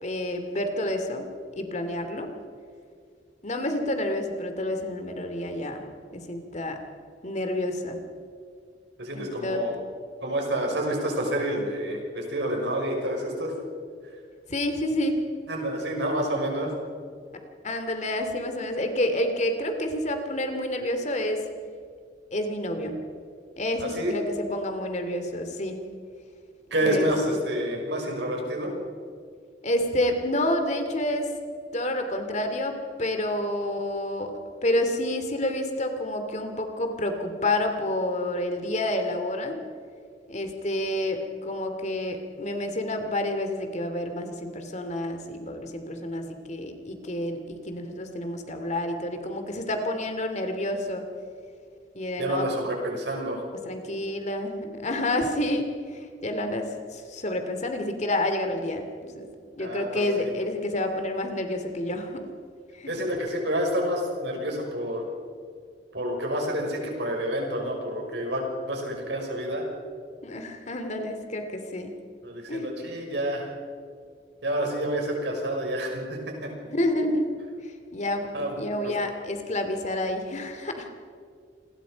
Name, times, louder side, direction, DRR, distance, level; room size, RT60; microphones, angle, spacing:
voice 1, 0.0-1.3 1.6-2.3 3.4-5.8 6.1-6.8 7.2-8.0 9.2-9.6 14.5-15.2 17.6-21.4 22.3-23.0 23.6-25.8 26.8-27.1 29.6-31.3 31.7-34.3 34.6-39.6 40.3-51.0 51.9-52.5 53.6-59.3 59.6-62.3 62.7-63.0 70.2-71.9 72.5-72.9 76.6-77.3 77.6-78.3 78.6-80.9, left 1 dB, 40° left, 6 dB, 2.6 m, -29 dB
voice 2, 9.0-9.7 10.2-13.5 14.0-14.1 15.5-16.7 23.8-24.2 26.7-28.7 52.2-53.4 59.6-60.3 62.9-65.0 65.9-69.6 72.2-73.5 74.4-76.5 78.3-78.6 78.8-78.9, right 1 dB, 75° right, 1 dB, 6.0 m, -28 dB
28.0 x 21.0 x 5.2 m, 2.2 s
head